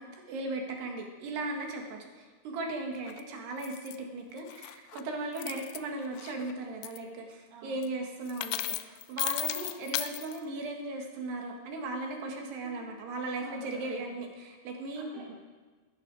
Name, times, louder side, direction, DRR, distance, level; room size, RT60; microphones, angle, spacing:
voice 1, 0.0-15.1, right 2 dB, 65° right, 2 dB, 3.7 m, -37 dB
sound 1, 3.1-3.2 3.6-4.0 4.4-5.0 5.4-5.8 6.2-6.5 6.8-7.0 7.8-7.9 8.3-10.4, left 16 dB, 85° left, 2.4 m, -35 dB
voice 2, 7.5-7.8 12.3-12.9 13.4-14.1 15.0-15.4, right 2 dB, 80° right, -5 dB, 5.8 m, -51 dB
17.0 x 14.0 x 4.9 m, 1.4 s
omnidirectional pair, 5.5 m